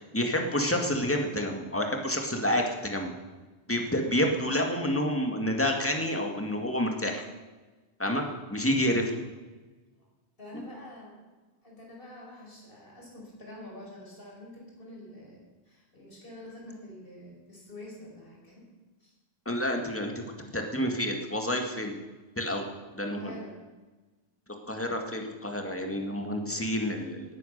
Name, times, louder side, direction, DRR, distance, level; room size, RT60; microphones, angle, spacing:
voice 1, 0.1-3.1 3.7-7.3 8.0-8.2 8.5-9.1 19.5-21.9 22.4-23.4 24.7-27.4, left 1 dB, 10° left, 3 dB, 2.0 m, -29 dB
voice 2, 10.4-11.2 11.6-18.6 19.0-19.1 22.9-23.6, left 1 dB, 50° left, -2 dB, 5.3 m, -47 dB
19.5 x 9.5 x 6.7 m, 1.2 s
omnidirectional pair, 1.2 m